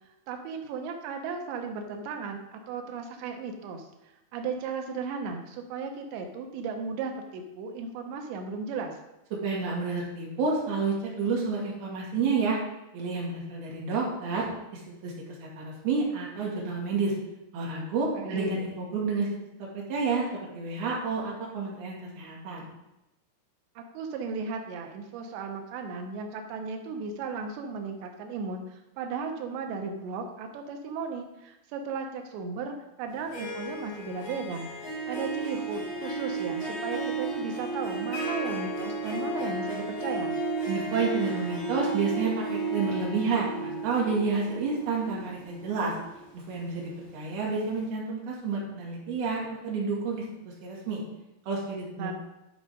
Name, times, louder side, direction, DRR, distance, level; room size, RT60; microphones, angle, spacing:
voice 1, 0.3-3.9 4.3-9.0 18.1-18.5 23.8-34.7 35.1-40.3 52.0-52.1, right 4 dB, 85° right, 4 dB, 3.2 m, -35 dB
voice 2, 9.4-12.6 12.9-14.5 14.7-15.1 15.4-17.1 17.5-19.3 19.6-22.7 40.7-45.9 46.3-51.0 51.5-52.1, right 4 dB, 65° right, -3 dB, 4.2 m, -30 dB
Harp, 33.1-47.1, right 3 dB, 65° left, 5.8 m, -33 dB
11.5 x 5.0 x 5.1 m, 0.92 s
omnidirectional pair, 5.0 m